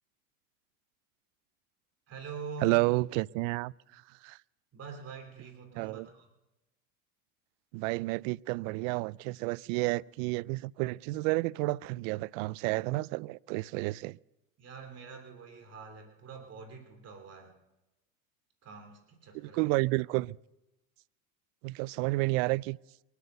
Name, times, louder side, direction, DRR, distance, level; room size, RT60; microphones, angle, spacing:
voice 1, 2.1-2.7 4.7-6.3 14.6-17.5 18.6-19.8, right 5 dB, 35° right, 3.2 m, -45 dB
voice 2, 2.6-4.4 5.7-6.1 7.7-14.2 19.3-20.4 21.6-22.8, right 22 dB, 65° right, 0.5 m, -31 dB
23.5 x 8.3 x 6.7 m
supercardioid pair, 100°, 42 cm